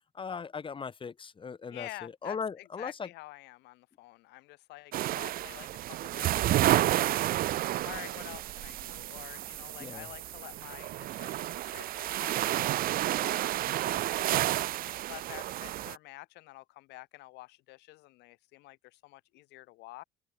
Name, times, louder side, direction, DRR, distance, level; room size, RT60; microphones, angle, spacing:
voice 1, 0.1-3.1 9.8-10.1, left 5 dB, 30° left, 2.0 m, -38 dB
voice 2, 1.7-7.2 7.5-14.8 15.1-20.0, left 20 dB, 90° left, 3.5 m, -49 dB
sound 1, 4.9-16.0, right 14 dB, 60° right, 0.5 m, -31 dB
cardioid pair, 110°, 17 cm